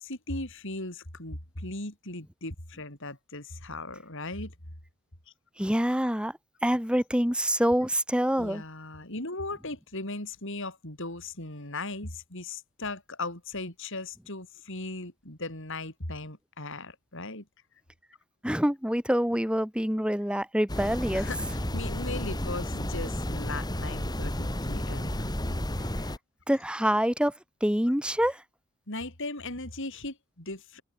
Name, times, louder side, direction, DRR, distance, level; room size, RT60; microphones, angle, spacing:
voice 1, 0.0-4.5 8.4-17.5 21.1-25.3 28.9-30.8, left 2 dB, 55° left, 7.1 m, -38 dB
voice 2, 5.6-8.6 18.4-21.3 26.5-27.3 27.6-28.4, equal, 5° right, 5.6 m, -26 dB
sound 1, 20.7-26.2, left 1 dB, 20° left, 3.3 m, -32 dB
head